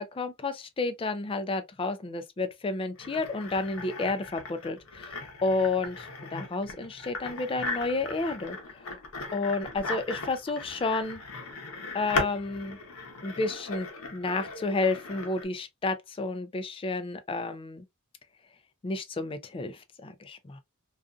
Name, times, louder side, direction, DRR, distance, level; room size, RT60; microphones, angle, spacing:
voice 1, 0.0-8.6 9.3-11.2 11.9-12.8 13.2-17.8 18.8-20.6, left 3 dB, 25° left, 0.3 m, -31 dB
sound 1, 3.0-15.5, left 2 dB, 80° left, 0.8 m, -38 dB
2.5 x 2.4 x 2.3 m
head